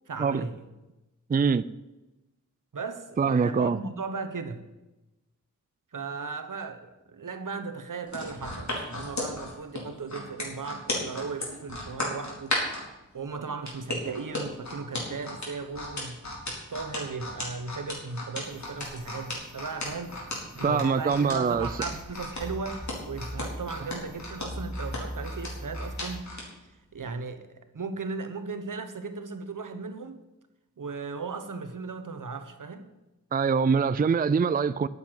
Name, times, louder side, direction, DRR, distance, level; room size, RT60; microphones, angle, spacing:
voice 1, 0.1-0.7 2.7-4.6 5.9-12.5 13.1-16.2 16.5-20.2 20.6-26.3 26.9-27.5 27.7-30.2 30.8-32.9, right 4 dB, 75° right, 1.3 m, -36 dB
voice 2, 1.3-1.6 3.2-3.8 20.6-21.7 33.3-34.9, right 5 dB, 30° right, 0.4 m, -24 dB
sound 1, 8.1-12.8 13.7-26.5 26.9-27.1, left 2 dB, 60° left, 4.5 m, -34 dB
sound 2, 18.4-26.2, equal, 10° right, 3.4 m, -41 dB
9.6 x 8.3 x 9.0 m
wide cardioid pair, 70°, 32 cm